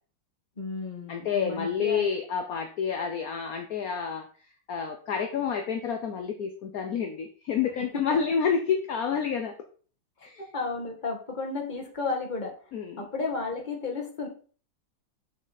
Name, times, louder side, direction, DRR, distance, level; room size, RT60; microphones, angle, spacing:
voice 1, 0.6-2.1 10.4-12.5 13.0-14.3, left 4 dB, 20° left, 0 dB, 1.7 m, -33 dB
voice 2, 1.1-4.3 4.7-9.5 10.2-10.4 12.7-13.1, left 6 dB, 60° left, 5 dB, 1.0 m, -29 dB
7.0 x 6.5 x 4.1 m, 0.41 s
omnidirectional pair, 2.4 m